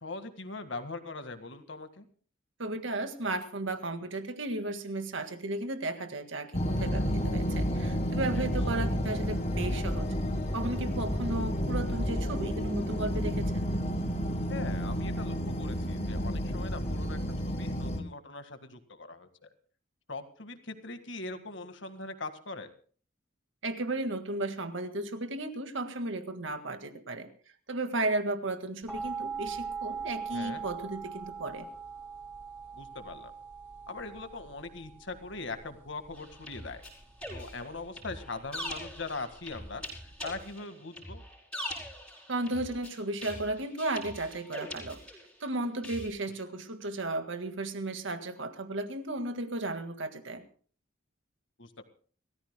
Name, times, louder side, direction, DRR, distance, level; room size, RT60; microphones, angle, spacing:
voice 1, 0.0-2.1 8.3-8.5 14.5-17.2 17.4-19.5 20.1-22.7 30.3-30.7 32.7-33.3 33.9-36.8 37.3-41.2 51.6-51.8, left 3 dB, 65° left, 8 dB, 1.8 m, -41 dB
voice 2, 2.6-10.1 10.5-13.7 23.6-27.3 27.7-31.7 42.3-45.0 45.4-50.4, right 2 dB, 70° right, 8 dB, 1.8 m, -34 dB
sound 1, 6.5-18.0, equal, 35° left, 1.6 m, -31 dB
sound 2, 28.9-40.4, right 5 dB, 10° right, 6.2 m, -42 dB
sound 3, 36.1-45.5 45.8-46.1, left 1 dB, 5° left, 5.0 m, -42 dB
30.0 x 14.5 x 2.2 m, 0.43 s
head